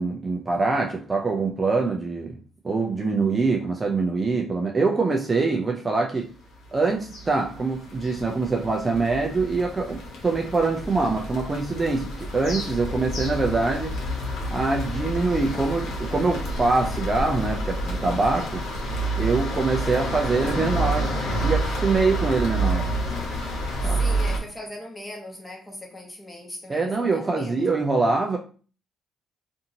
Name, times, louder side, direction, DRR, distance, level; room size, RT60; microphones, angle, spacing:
voice 1, 0.0-2.4 2.6-6.3 6.7-13.9 14.5-18.7 19.2-21.2 21.4-22.9 23.8-24.1 26.7-28.4, right 3 dB, 25° right, 0.4 m, -24 dB
sound 1, 6.7-24.4, right 1 dB, 85° left, 1.0 m, -29 dB
voice 2, 23.8-27.7, left 1 dB, 15° left, 1.1 m, -39 dB
2.8 x 2.6 x 2.7 m
cardioid pair, 90°, 0 cm